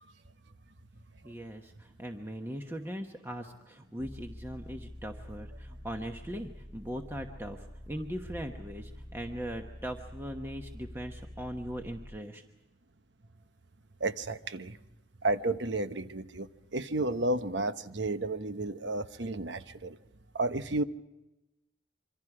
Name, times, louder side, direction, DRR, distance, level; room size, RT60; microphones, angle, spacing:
voice 1, 1.2-12.4, equal, 10° right, 3 dB, 1.1 m, -40 dB
sound 1, 4.0-12.2, equal, 5° left, 0.9 m, -47 dB
voice 2, 14.0-14.8 15.2-20.0 20.3-20.8, right 2 dB, 75° right, 10 dB, 1.0 m, -32 dB
26.5 x 25.0 x 4.9 m, 0.98 s
head